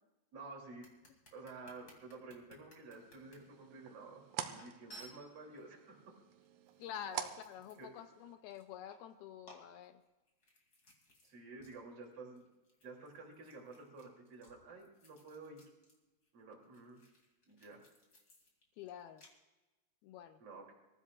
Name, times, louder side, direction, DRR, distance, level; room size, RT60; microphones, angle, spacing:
voice 1, 0.3-0.8 1.3-6.1 7.8-7.9 11.2-12.5 12.8-15.6 16.3-17.0 17.5-17.8 20.4-20.7, right 3 dB, 40° right, -1 dB, 3.5 m, -51 dB
sound 1, 0.8-3.4 4.0-4.1 4.6-5.6 6.4-8.1 8.4-9.1 9.4-11.3 11.6-11.8 12.0-16.0 16.2-19.3, right 1 dB, 25° left, 2.6 m, -61 dB
sound 2, 2.9-8.3, right 11 dB, 85° right, 2.9 m, -48 dB
voice 2, 6.8-10.0 18.8-19.2 20.0-20.4, left 9 dB, 80° left, 9 dB, 2.3 m, -48 dB
26.5 x 15.0 x 2.4 m, 1.1 s
omnidirectional pair, 4.7 m